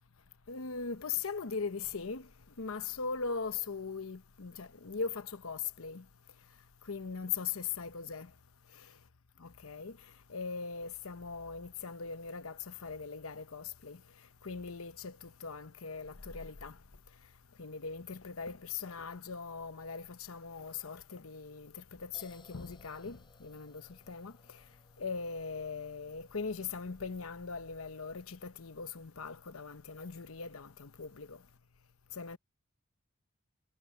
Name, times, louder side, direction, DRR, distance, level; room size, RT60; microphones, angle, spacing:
voice 1, 0.5-2.3 2.6-6.0 6.9-8.3 9.4-10.0 10.3-14.0 14.4-16.8 17.6-24.6 25.0-31.4 32.1-32.4, left 5 dB, 75° left, 1.0 m, -40 dB
sound 1, 22.1-27.9, left 3 dB, 20° left, 7.0 m, -64 dB
head